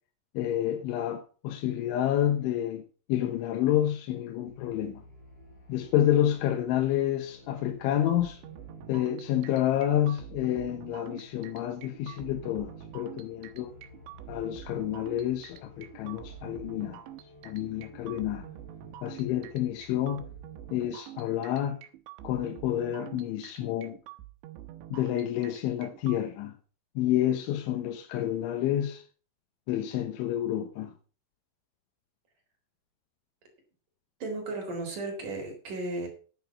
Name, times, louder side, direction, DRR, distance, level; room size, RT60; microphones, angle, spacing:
voice 1, 0.3-2.8 3.1-5.0 5.7-8.4 8.9-13.7 14.3-17.0 17.4-18.4 19.0-20.2 20.7-21.8 22.2-24.0 24.9-26.5 27.0-29.0 29.7-30.9, left 12 dB, 80° left, 3.5 m, -29 dB
sound 1, 4.4-20.9, left 3 dB, 30° left, 4.1 m, -54 dB
sound 2, 8.1-26.2, right 13 dB, 75° right, 3.3 m, -46 dB
voice 2, 34.2-36.1, right 2 dB, 45° right, 5.1 m, -34 dB
10.5 x 9.6 x 5.9 m
omnidirectional pair, 5.4 m